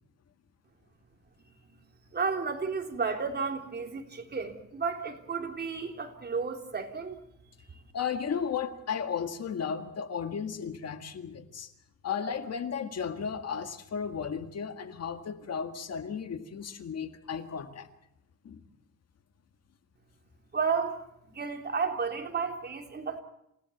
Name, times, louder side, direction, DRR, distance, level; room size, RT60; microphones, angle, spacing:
voice 1, 2.1-7.2 7.7-7.8 20.5-23.2, right 5 dB, 30° right, 3 dB, 3.5 m, -32 dB
voice 2, 7.9-11.7 12.0-17.9 18.4-18.6, left 7 dB, 50° left, 8 dB, 1.8 m, -34 dB
27.5 x 17.5 x 7.2 m, 0.80 s
cardioid pair, 120°, 31 cm